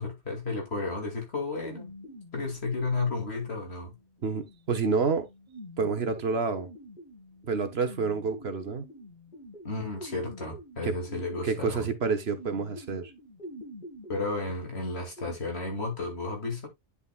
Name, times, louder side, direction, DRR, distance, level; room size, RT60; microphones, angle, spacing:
voice 1, 0.0-1.9 2.3-3.9 9.6-11.9 14.1-16.7, left 3 dB, 60° left, 2.7 m, -32 dB
sound 1, 1.6-15.3, equal, 40° left, 2.0 m, -47 dB
voice 2, 4.2-5.3 5.8-6.7 7.4-8.9 10.8-10.9 11.4-13.1, right 5 dB, 60° right, 1.4 m, -28 dB
10.0 x 5.7 x 2.3 m
omnidirectional pair, 1.2 m